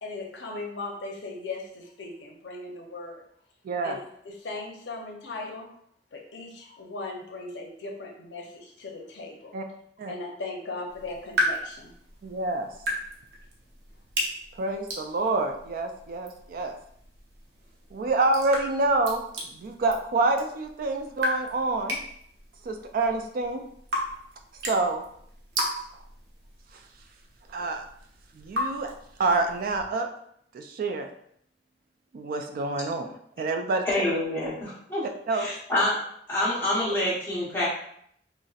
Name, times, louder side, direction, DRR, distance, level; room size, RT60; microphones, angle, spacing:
voice 1, 0.0-3.2 3.8-5.7 6.1-9.5 10.1-11.9, left 3 dB, 90° left, 1 dB, 0.6 m, -38 dB
voice 2, 3.6-4.0 9.5-9.6 10.0-10.1 12.2-12.7 14.6-16.8 17.9-19.2 19.5-22.0 22.6-23.6 24.7-25.0 27.5-27.8 28.3-28.9 29.2-30.1 30.5-31.1 32.1-33.8 35.3-35.5, right 2 dB, 55° right, 6 dB, 0.3 m, -27 dB
sound 1, 10.9-29.8, equal, 75° right, 0.7 m, -36 dB
voice 3, 33.8-35.0 35.3-36.0 36.3-37.7, left 1 dB, 15° left, -9 dB, 1.1 m, -27 dB
4.0 x 2.0 x 2.4 m, 0.69 s
head